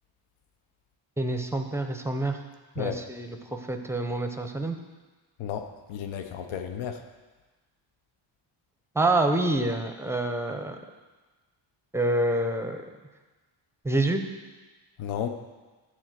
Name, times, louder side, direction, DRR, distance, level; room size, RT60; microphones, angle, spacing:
voice 1, 1.2-2.4 2.8-4.8 8.9-10.8 11.9-12.8 13.8-14.2, right 2 dB, 5° right, 5 dB, 0.5 m, -27 dB
voice 2, 5.4-7.0 15.0-15.3, left 9 dB, 90° left, 7 dB, 0.9 m, -33 dB
10.5 x 4.3 x 7.5 m, 1.2 s
wide cardioid pair, 165°, 47 cm